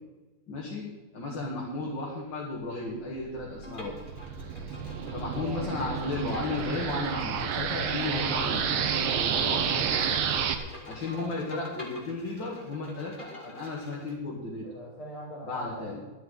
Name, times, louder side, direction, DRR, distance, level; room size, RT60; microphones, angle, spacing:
voice 1, 0.5-4.0 5.1-10.2 10.9-14.7 15.4-16.0, left 3 dB, 60° left, -4 dB, 2.8 m, -34 dB
sound 1, 3.2-10.5, right 7 dB, 85° right, 1.9 m, -30 dB
Bowed string instrument, 3.6-14.1, left 1 dB, 25° left, 2.3 m, -46 dB
voice 2, 5.3-5.6 11.1-11.3 14.6-16.0, equal, 80° left, -1 dB, 4.2 m, -42 dB
12.0 x 10.5 x 5.6 m, 1.2 s
omnidirectional pair, 2.4 m